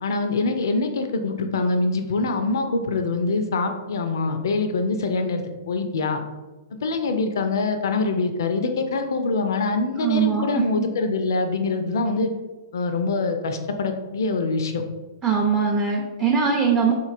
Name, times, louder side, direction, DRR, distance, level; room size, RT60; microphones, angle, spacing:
voice 1, 0.0-6.2 6.8-12.3 12.7-14.8, left 3 dB, 60° left, 6 dB, 0.4 m, -24 dB
voice 2, 10.0-10.8 15.2-16.9, right 6 dB, 15° right, -2 dB, 0.4 m, -21 dB
4.0 x 2.9 x 2.4 m, 1.2 s
figure-of-eight pair, 110°, 2 cm